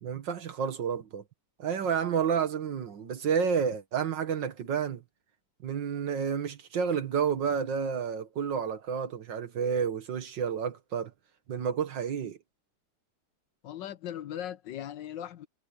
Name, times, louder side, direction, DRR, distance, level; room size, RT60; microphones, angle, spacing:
voice 1, 0.0-1.2 1.6-5.0 5.6-11.1 11.5-12.4, right 7 dB, 85° right, 2.1 m, -30 dB
voice 2, 13.6-15.5, left 11 dB, 85° left, 1.6 m, -38 dB
omnidirectional pair, 1.9 m